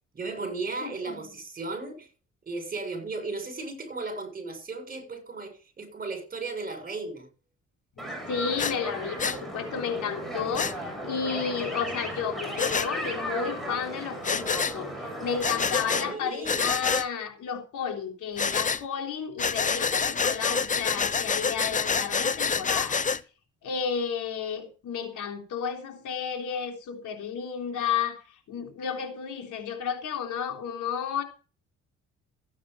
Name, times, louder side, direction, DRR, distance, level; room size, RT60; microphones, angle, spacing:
voice 1, 0.1-2.1 2.5-7.3 11.2-11.6 15.9-16.7, right 3 dB, 30° right, 7.0 m, -36 dB
voice 2, 0.8-1.2 8.0-23.0 23.6-28.2 28.5-31.2, left 7 dB, 80° left, 3.6 m, -32 dB
sound 1, 8.0-16.1, right 1 dB, ahead, 7.0 m, -36 dB
Breathing, 8.6-8.7 9.2-9.4 10.5-10.7 12.6-12.9 14.2-14.8 15.4-16.1 16.4-17.1 18.4-18.8 19.4-23.2, left 5 dB, 25° left, 0.7 m, -27 dB
14.5 x 9.2 x 5.7 m
cardioid pair, 90°, 30 cm